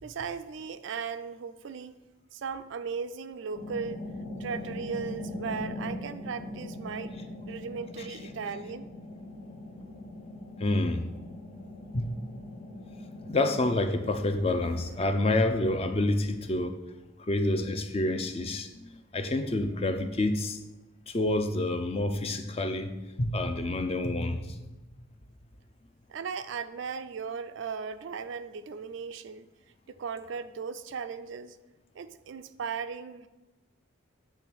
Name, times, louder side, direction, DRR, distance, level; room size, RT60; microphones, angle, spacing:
voice 1, 0.0-2.0 2.3-4.0 4.4-7.1 7.5-8.9 26.1-29.5 30.0-31.6 32.0-33.3, right 6 dB, 60° right, 10 dB, 0.3 m, -37 dB
sound 1, 3.5-14.8, left 1 dB, 70° left, 1.7 m, -41 dB
voice 2, 10.6-11.0 11.9-12.1 13.3-16.8 17.2-20.6 21.1-24.6, left 2 dB, 30° left, 8 dB, 0.5 m, -28 dB
8.7 x 3.3 x 6.1 m, 1.1 s
head